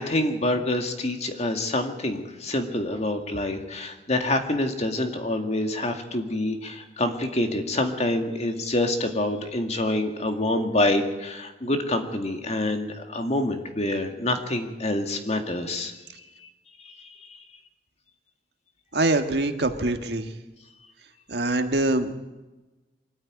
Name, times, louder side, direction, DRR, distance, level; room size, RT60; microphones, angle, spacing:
voice 1, 0.0-15.9 16.8-17.1, left 1 dB, 40° left, 5 dB, 2.1 m, -26 dB
voice 2, 18.9-20.3 21.3-22.1, right 2 dB, 65° right, 6 dB, 1.7 m, -24 dB
23.5 x 14.0 x 9.4 m, 1.1 s
head